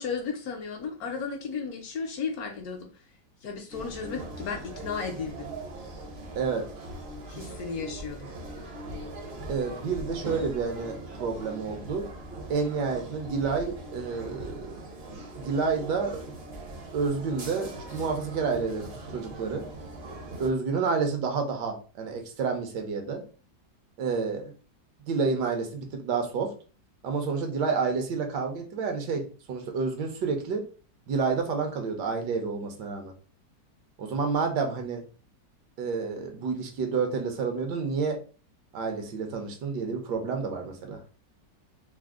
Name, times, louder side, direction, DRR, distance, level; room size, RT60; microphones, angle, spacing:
voice 1, 0.0-2.9 3.4-5.5 7.3-8.3, left 5 dB, 65° left, 3 dB, 1.0 m, -34 dB
sound 1, 3.7-20.5, right 2 dB, 50° right, 0.7 m, -41 dB
voice 2, 6.4-6.7 9.5-12.1 12.5-14.7 15.4-16.2 16.9-19.7 20.4-23.2 24.0-24.5 25.1-26.5 27.0-30.6 31.1-33.1 34.0-35.0 35.8-38.2 38.7-41.0, right 5 dB, 75° right, 4 dB, 1.3 m, -29 dB
3.5 x 2.0 x 3.5 m, 0.37 s
omnidirectional pair, 1.9 m